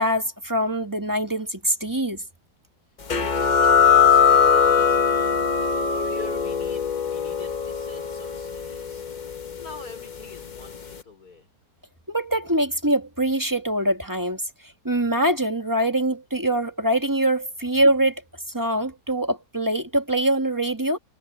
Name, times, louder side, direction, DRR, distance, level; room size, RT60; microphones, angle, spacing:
voice 1, 0.0-2.2 12.1-14.4 14.8-18.2 18.5-21.0, right 1 dB, 10° right, 1.4 m, -23 dB
voice 2, 3.1-5.3 5.6-11.5, left 4 dB, 60° left, 5.1 m, -44 dB
sound 1, 3.1-10.3, left 6 dB, 35° left, 0.8 m, -21 dB
omnidirectional pair, 1.8 m